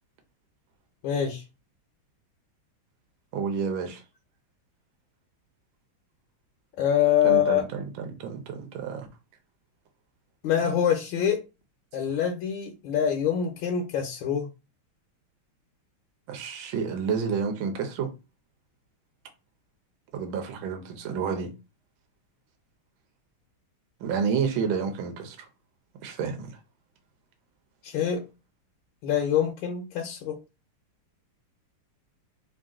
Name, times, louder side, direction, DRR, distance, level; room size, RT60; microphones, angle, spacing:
voice 1, 1.0-1.4 6.8-7.6 10.4-11.4 11.9-14.5 27.8-28.2 29.0-30.4, left 9 dB, 70° left, 1.4 m, -25 dB
voice 2, 3.3-4.0 7.2-9.1 16.3-18.1 20.1-21.5 24.0-25.5 26.0-26.5, right 6 dB, 70° right, 1.5 m, -30 dB
3.7 x 2.6 x 3.6 m
omnidirectional pair, 2.4 m